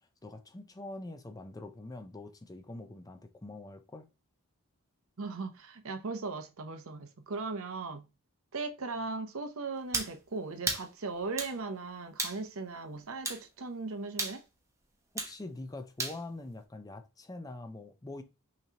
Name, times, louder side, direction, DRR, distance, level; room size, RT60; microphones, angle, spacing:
voice 1, 0.2-4.1 15.2-18.2, left 2 dB, 15° left, 0.5 m, -44 dB
voice 2, 5.2-8.0 8.5-14.4, right 3 dB, 65° right, 0.7 m, -38 dB
sound 1, 9.9-10.1 10.7-10.9 11.4-11.6 12.2-12.4 13.2-13.4 14.2-14.4 15.2-15.3 16.0-16.2, right 3 dB, 15° right, 0.8 m, -33 dB
5.8 x 3.1 x 2.8 m
head